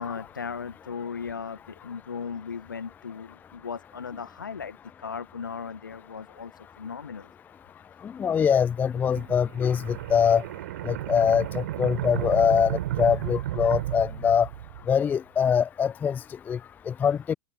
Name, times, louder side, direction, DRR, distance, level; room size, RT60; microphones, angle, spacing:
voice 1, 0.0-7.3, left 6 dB, 75° left, 1.1 m, -37 dB
voice 2, 8.0-10.4 10.8-14.5 14.9-16.6 16.9-17.3, left 7 dB, 15° left, 0.4 m, -23 dB
sound 1, 9.1-15.0, right 14 dB, 55° right, 5.3 m, -33 dB
figure-of-eight pair, 90°, 11 cm